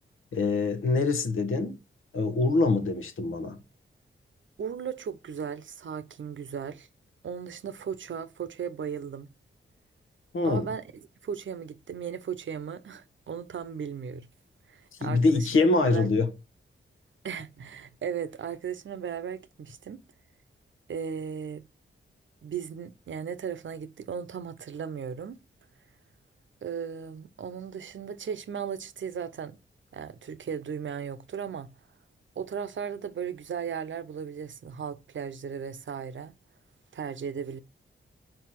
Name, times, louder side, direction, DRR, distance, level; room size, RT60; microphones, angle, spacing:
voice 1, 0.3-1.8 2.1-3.6 10.3-10.7 15.0-16.3, left 3 dB, 80° left, 1.2 m, -24 dB
voice 2, 4.6-6.9 7.2-9.3 10.4-14.3 14.7-16.1 17.2-20.0 20.9-21.7 22.4-25.4 26.6-29.6 29.9-31.7 32.4-36.3 36.9-37.6, right 7 dB, 70° right, 0.8 m, -36 dB
4.7 x 4.5 x 5.8 m
cardioid pair, 65°, 21 cm